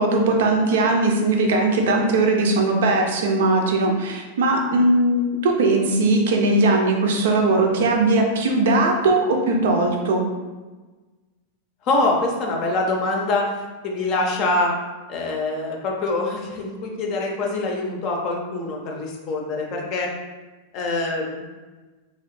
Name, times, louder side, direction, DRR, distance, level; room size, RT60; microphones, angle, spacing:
voice 1, 0.0-10.2, right 2 dB, 60° right, 2 dB, 0.5 m, -19 dB
voice 2, 11.8-13.5 13.8-14.7 15.1-20.1 20.7-21.4, left 2 dB, 40° left, 0 dB, 0.6 m, -24 dB
2.9 x 2.7 x 3.1 m, 1.3 s
figure-of-eight pair, 90°, 0 cm